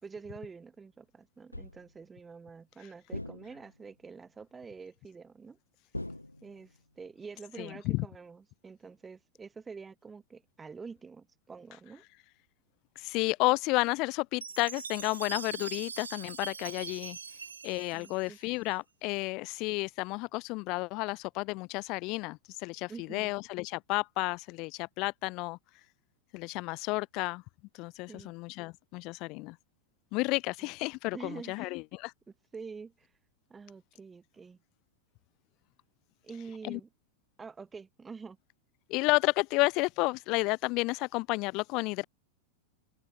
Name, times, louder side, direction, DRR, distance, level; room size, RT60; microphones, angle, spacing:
voice 1, 0.0-5.6 6.4-12.0 17.9-18.4 22.9-23.3 28.1-28.3 30.6-30.7 31.1-31.8 32.5-33.1 33.5-34.6 36.2-36.9 37.4-38.4, right 5 dB, 15° right, 2.8 m, -47 dB
sound 1, 1.5-2.0 3.1-3.9 5.9-6.8, left 1 dB, 85° left, 2.7 m, -42 dB
voice 2, 7.6-8.1 13.0-17.2 17.6-25.6 26.3-27.4 27.7-29.6 30.1-32.1 36.6-36.8 38.9-42.0, left 25 dB, 40° left, 0.7 m, -31 dB
Chime, 14.4-18.7, right 6 dB, 75° right, 4.9 m, -43 dB
open air
figure-of-eight pair, 90°, 0 cm